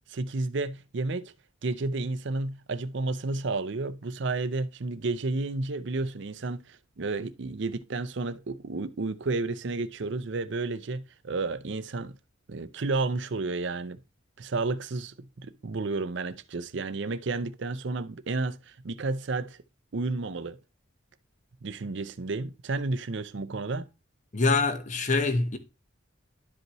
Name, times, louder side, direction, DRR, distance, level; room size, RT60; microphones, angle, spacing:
voice 1, 0.1-1.3 1.6-12.1 12.5-14.0 14.4-18.6 18.8-19.6 19.9-20.6 21.6-23.9, right 3 dB, 60° right, 0.6 m, -31 dB
voice 2, 24.3-25.6, left 3 dB, 35° left, 1.0 m, -25 dB
11.5 x 5.4 x 3.0 m
head